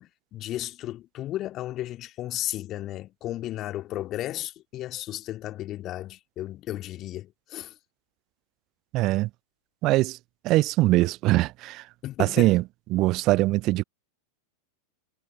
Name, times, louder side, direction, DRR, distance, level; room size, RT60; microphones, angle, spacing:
voice 1, 0.0-7.7 12.0-12.5, left 14 dB, 35° left, 2.1 m, -34 dB
voice 2, 8.9-9.3 9.8-10.2 10.4-11.8 12.2-12.6 12.9-13.8, right 19 dB, 40° right, 0.3 m, -22 dB
figure-of-eight pair, 90°, 0 cm